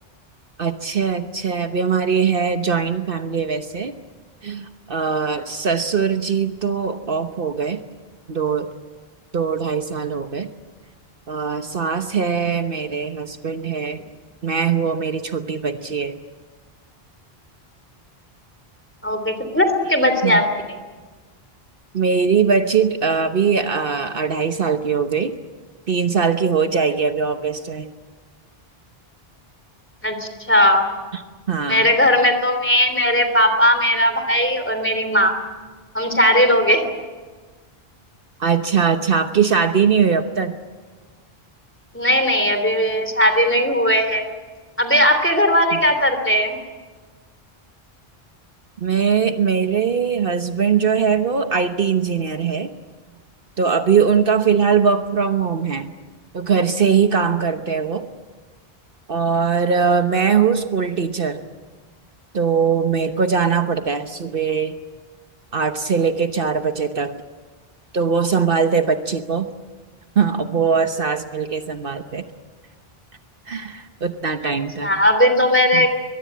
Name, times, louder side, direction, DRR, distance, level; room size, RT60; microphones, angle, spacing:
voice 1, 0.6-3.9 4.4-7.8 8.3-8.7 9.3-10.5 11.3-14.0 14.4-16.1 20.2-20.4 21.9-25.3 25.9-27.9 31.1-31.2 31.5-31.9 38.4-40.6 45.7-45.8 48.8-52.7 53.6-55.9 56.3-58.1 59.1-61.4 62.3-64.8 65.5-67.1 67.9-69.5 70.2-72.2 73.5-74.9 75.7-75.9, right 6 dB, 60° right, 7 dB, 1.3 m, -21 dB
voice 2, 19.0-20.4 30.0-30.9 31.7-35.3 35.9-36.8 41.9-44.2 44.8-46.6 60.4-60.5 74.4-74.5 74.8-75.9, equal, 10° left, 7 dB, 3.1 m, -17 dB
23.0 x 22.0 x 8.6 m, 1.4 s
omnidirectional pair, 1.0 m